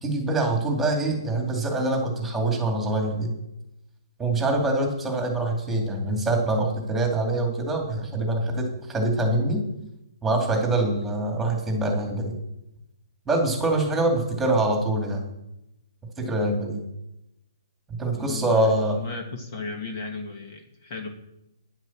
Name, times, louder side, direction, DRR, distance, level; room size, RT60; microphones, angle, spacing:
voice 1, 0.0-3.3 4.2-9.6 10.2-12.4 13.3-15.2 16.2-16.8 17.9-19.0, right 2 dB, 5° right, 2 dB, 2.3 m, -24 dB
voice 2, 18.2-21.1, left 3 dB, 35° left, 4 dB, 1.6 m, -36 dB
10.0 x 8.2 x 7.2 m, 0.88 s
hypercardioid pair, 165°, 2 cm